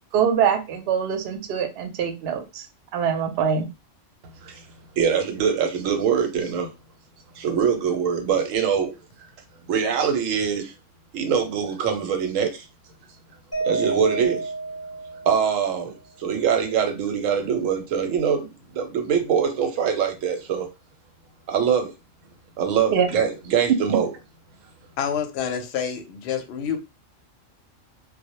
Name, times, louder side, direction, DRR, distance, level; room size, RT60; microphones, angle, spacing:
voice 1, 0.1-2.6 2.9-3.7 22.9-23.1, right 7 dB, 65° right, 0.7 m, -23 dB
voice 2, 5.0-6.7 7.4-8.9 9.7-10.7 11.1-12.7 13.6-14.5 15.3-18.5 18.7-20.7 21.5-21.9 22.6-24.1, right 7 dB, 90° right, 1.0 m, -23 dB
Mallet percussion, 13.5-15.8, right 3 dB, 15° left, 0.7 m, -30 dB
voice 3, 25.0-26.8, left 8 dB, 65° left, 0.7 m, -28 dB
2.1 x 2.0 x 2.9 m
omnidirectional pair, 1.3 m